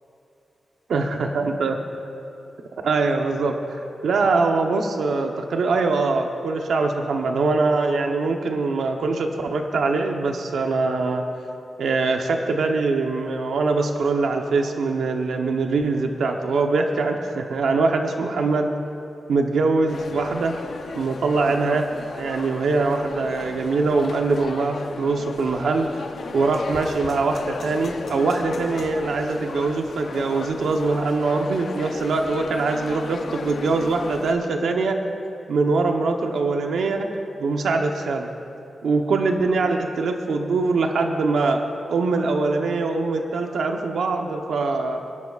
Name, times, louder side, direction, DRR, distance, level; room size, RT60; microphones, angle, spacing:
voice 1, 0.9-1.8 2.8-11.2 11.8-18.7 19.3-20.5 20.9-21.9 22.1-25.9 26.3-35.0 35.5-37.1 37.4-38.3 38.8-41.6 41.9-45.0, right 3 dB, 85° right, 3 dB, 0.9 m, -23 dB
sound 1, 19.9-34.3, left 4 dB, 55° left, 0.7 m, -35 dB
27.0 x 11.0 x 2.4 m, 2.8 s
wide cardioid pair, 160°, 0 cm